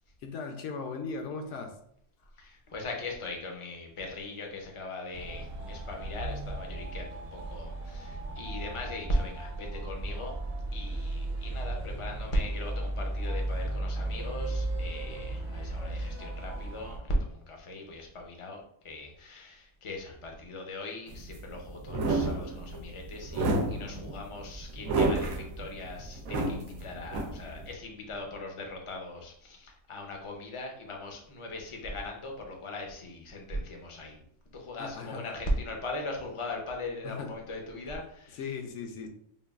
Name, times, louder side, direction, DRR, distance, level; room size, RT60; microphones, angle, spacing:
voice 1, 0.2-1.8 34.8-35.3 37.0-37.3 38.3-39.1, left 5 dB, 70° left, 5 dB, 0.9 m, -38 dB
voice 2, 2.4-10.3 10.7-34.2 34.5-38.4, left 1 dB, 40° left, 1 dB, 0.4 m, -38 dB
sound 1, 5.1-17.0, right 1 dB, 45° right, 0.7 m, -35 dB
sound 2, 21.1-27.7, right 2 dB, 85° right, 1.0 m, -31 dB
5.2 x 2.3 x 2.3 m, 0.68 s
omnidirectional pair, 1.4 m